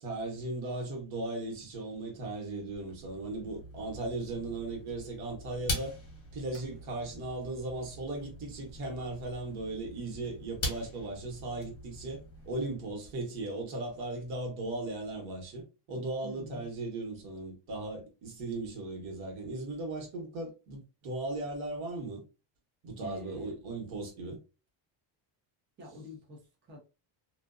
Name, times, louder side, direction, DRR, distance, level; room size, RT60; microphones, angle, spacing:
voice 1, 0.0-5.9 6.3-22.2 22.8-24.4, right 2 dB, 85° right, 1.2 m, -37 dB
sound 1, 2.6-13.1, left 1 dB, 30° left, 1.0 m, -43 dB
voice 2, 16.2-16.7 23.0-23.6 25.8-26.8, left 1 dB, 25° right, 0.8 m, -47 dB
2.5 x 2.3 x 2.4 m
cardioid pair, 145°, 47 cm